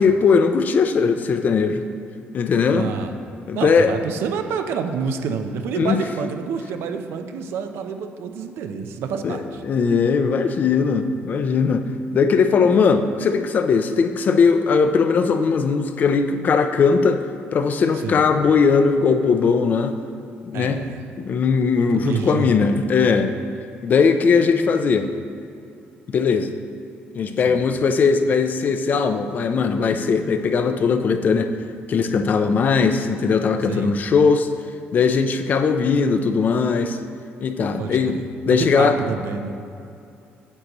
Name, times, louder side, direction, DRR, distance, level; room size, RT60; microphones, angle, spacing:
voice 1, 0.0-1.9 2.3-2.9 3.5-3.9 5.7-6.0 9.2-11.8 12.1-17.2 17.5-20.0 20.4-20.8 21.2-23.3 23.8-25.1 26.1-26.5 27.1-31.5 31.9-34.5 34.9-37.0 37.4-38.2 38.5-39.0, left 5 dB, 45° left, 8 dB, 0.5 m, -19 dB
voice 2, 2.7-3.1 3.5-9.6 18.0-18.3 20.5-21.0 21.8-22.6 27.4-27.6 33.7-34.0 37.8-38.3 38.6-39.5, right 6 dB, 80° right, 7 dB, 0.6 m, -28 dB
9.9 x 8.0 x 3.0 m, 2.5 s
cardioid pair, 140°, 4 cm